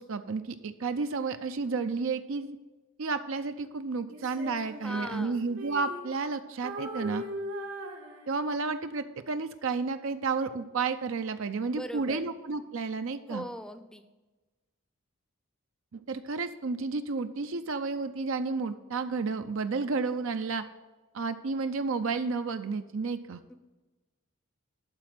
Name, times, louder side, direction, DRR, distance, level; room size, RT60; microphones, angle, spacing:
voice 1, 0.0-2.6 3.0-7.2 8.3-13.4 15.9-20.6 21.1-23.4, right 4 dB, 70° right, 9 dB, 0.5 m, -31 dB
Female singing, 4.1-6.3 6.6-8.7, right 1 dB, 90° right, 1.9 m, -40 dB
voice 2, 4.8-5.4 11.7-12.3 13.3-14.0 23.5-23.6, equal, 5° left, 9 dB, 0.6 m, -39 dB
12.0 x 4.3 x 7.6 m, 1.2 s
head